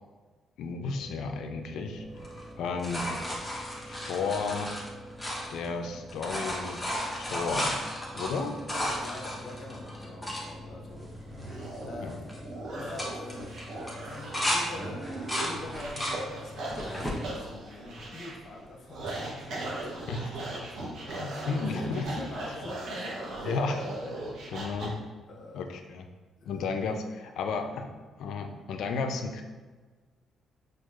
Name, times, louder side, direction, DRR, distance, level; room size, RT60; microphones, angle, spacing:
voice 1, 0.6-2.0 2.6-3.1 3.8-4.7 5.5-6.8 7.2-7.8 8.1-8.6 10.7-10.8 12.0-12.2 20.1-20.3 21.2-22.3 23.4-23.9 24.1-25.0 25.5-26.0 26.5-27.9 28.2-29.4, left 4 dB, 80° left, 6 dB, 0.3 m, -33 dB
sound 1, 0.9-17.6, equal, 15° right, 0.5 m, -47 dB
sound 2, 2.2-5.8 6.1-10.4 11.0-11.1 11.3-11.8 12.1-12.4 12.8-14.6 15.0-16.2 16.7-17.2 17.8-18.6 20.2-20.3, equal, 10° left, 0.8 m, -34 dB
voice 2, 8.7-11.6 11.8-12.2 12.8-23.6 25.3-25.7 26.4-26.7, left 2 dB, 60° left, -1 dB, 0.8 m, -45 dB
sound 3, 10.5-24.9, right 2 dB, 70° right, 0.8 m, -39 dB
4.6 x 2.4 x 2.4 m, 1.3 s
cardioid pair, 90°, 0 cm